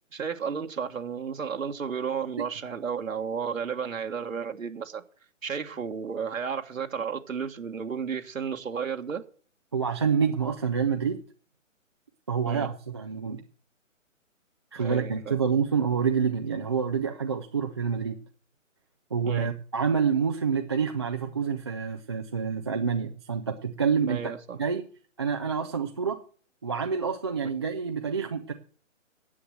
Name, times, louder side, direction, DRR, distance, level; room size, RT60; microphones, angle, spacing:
voice 1, 0.1-5.0 5.4-9.2 12.4-12.7 14.8-15.4 19.3-19.5 24.1-24.6, right 6 dB, 80° right, 4 dB, 1.6 m, -33 dB
voice 2, 9.7-11.2 12.3-13.4 14.7-18.2 19.1-24.3 24.6-24.8 25.2-26.2 26.6-28.5, right 6 dB, 20° right, 3 dB, 0.4 m, -27 dB
10.0 x 7.9 x 7.7 m, 0.43 s
hypercardioid pair, 150°, 39 cm